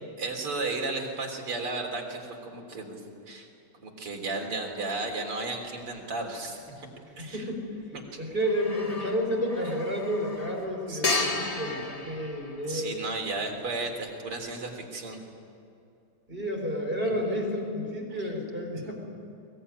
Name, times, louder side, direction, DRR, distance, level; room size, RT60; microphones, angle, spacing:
voice 1, 0.2-3.0 3.3-3.5 3.8-6.9 7.2-7.5 7.9-8.0 9.0-9.1 10.9-11.3 12.6-15.2 18.2-18.3, right 3 dB, 85° right, 1 dB, 4.6 m, -34 dB
sound 1, 5.7-5.8 8.4-13.2, left 3 dB, 20° left, 1.1 m, -34 dB
voice 2, 7.2-7.7 8.2-12.9 16.3-18.9, equal, 25° right, 0 dB, 5.4 m, -30 dB
23.0 x 20.5 x 10.0 m, 2.6 s
omnidirectional pair, 2.4 m